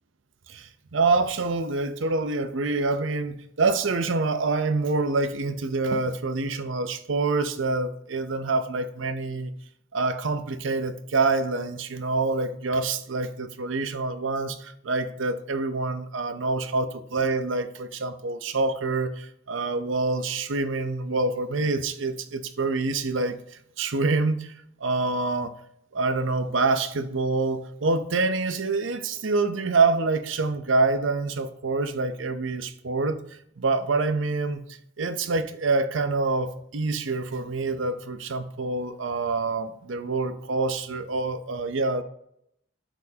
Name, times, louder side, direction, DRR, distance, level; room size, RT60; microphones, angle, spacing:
voice 1, 0.5-9.5 9.9-23.4 23.8-24.5 24.8-25.5 25.9-33.2 33.6-34.6 35.0-42.0, right 3 dB, 75° right, 0.7 m, -26 dB
12.5 x 4.5 x 2.8 m
head